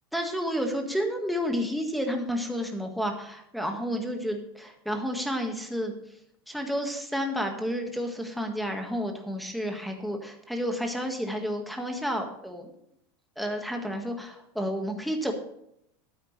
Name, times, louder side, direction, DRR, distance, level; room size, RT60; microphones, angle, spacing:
voice 1, 0.1-5.9 6.5-12.7 13.4-15.3, equal, ahead, 2 dB, 1.7 m, -31 dB
13.0 x 9.0 x 3.3 m, 0.76 s
supercardioid pair, 135°, 13 cm